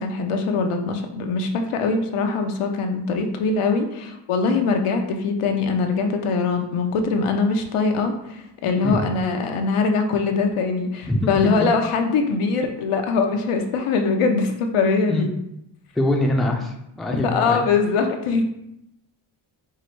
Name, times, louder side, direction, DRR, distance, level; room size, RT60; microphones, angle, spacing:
voice 1, 0.0-15.3 17.2-18.4, left 4 dB, 80° left, 5 dB, 0.7 m, -22 dB
voice 2, 11.1-11.5 15.1-15.3 15.9-17.6, left 1 dB, ahead, 2 dB, 0.4 m, -23 dB
4.7 x 2.0 x 4.4 m, 0.82 s
wide cardioid pair, 115°, 50 cm